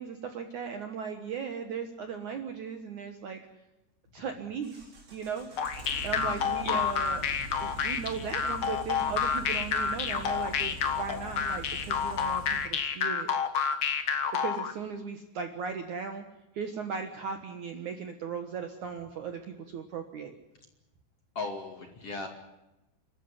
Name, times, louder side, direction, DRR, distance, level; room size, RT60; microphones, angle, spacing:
voice 1, 0.0-3.4 4.1-5.5 6.0-7.2 7.6-13.3 14.4-16.2 16.5-20.3, right 6 dB, 60° right, 6 dB, 2.2 m, -37 dB
sound 1, 4.6-12.7, equal, 30° right, 3.8 m, -44 dB
sound 2, 5.6-14.7, left 7 dB, 85° left, 1.1 m, -29 dB
voice 2, 6.2-6.8 7.2-7.3 21.3-22.3, left 3 dB, 40° left, 4 dB, 2.6 m, -38 dB
29.5 x 13.5 x 9.8 m, 0.95 s
omnidirectional pair, 5.0 m